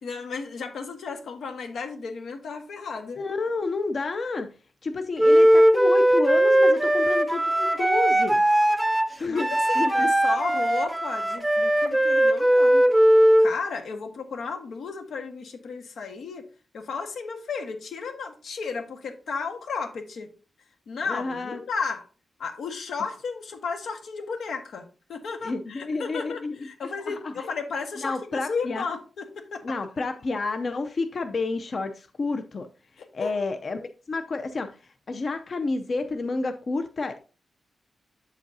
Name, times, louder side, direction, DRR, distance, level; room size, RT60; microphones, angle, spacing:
voice 1, 0.0-3.2 9.3-12.8 13.4-16.4 16.7-20.3 20.9-22.0 22.4-29.8 33.0-33.4, left 5 dB, 90° left, 1.5 m, -34 dB
voice 2, 3.2-4.5 4.8-8.4 9.2-10.1 21.0-21.6 25.4-26.5 26.8-27.5 28.0-28.9 29.6-32.7 33.1-37.2, left 3 dB, 45° left, 0.6 m, -30 dB
Wind instrument woodwind instrument, 5.2-13.5, right 1 dB, 5° right, 0.6 m, -19 dB
8.1 x 7.3 x 2.7 m
wide cardioid pair, 155°, 0 cm